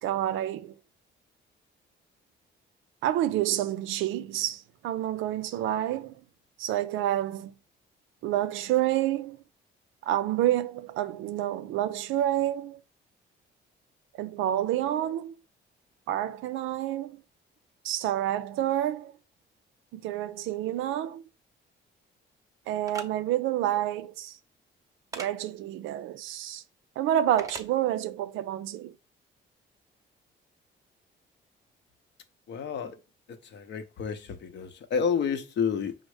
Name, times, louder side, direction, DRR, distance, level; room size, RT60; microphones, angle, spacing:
voice 1, 0.0-0.7 3.0-6.1 6.6-7.5 8.2-9.4 10.0-12.8 14.2-15.3 16.1-17.2 17.8-19.1 19.9-21.3 22.7-24.4 25.1-26.6 27.0-28.9, right 12 dB, 85° right, 0.4 m, -28 dB
sound 1, 22.9-23.1 25.1-25.3 27.4-27.7, right 3 dB, 15° right, 0.7 m, -38 dB
voice 2, 32.5-33.0 33.4-36.0, left 6 dB, 65° left, 0.7 m, -30 dB
5.1 x 2.0 x 4.7 m
cardioid pair, 90°, 20 cm